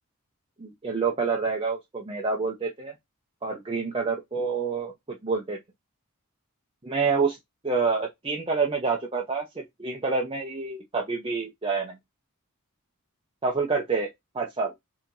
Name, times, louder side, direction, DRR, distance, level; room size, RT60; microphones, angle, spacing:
voice 1, 0.6-2.9 3.4-4.9 5.2-5.6 6.8-7.4 7.6-12.0 13.4-14.1 14.3-14.7, right 4 dB, 25° right, 0.7 m, -27 dB
4.9 x 2.9 x 2.6 m
head